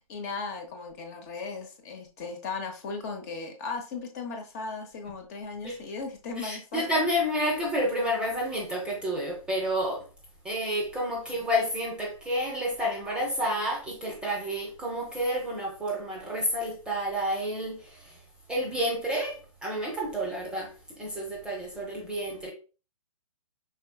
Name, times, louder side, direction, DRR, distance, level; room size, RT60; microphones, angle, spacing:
voice 1, 0.0-6.9, left 4 dB, 30° left, 0.8 m, -37 dB
voice 2, 6.4-10.0 10.4-18.2 18.5-22.5, equal, 5° right, 0.7 m, -30 dB
5.3 x 3.8 x 2.3 m
figure-of-eight pair, 125°, 18 cm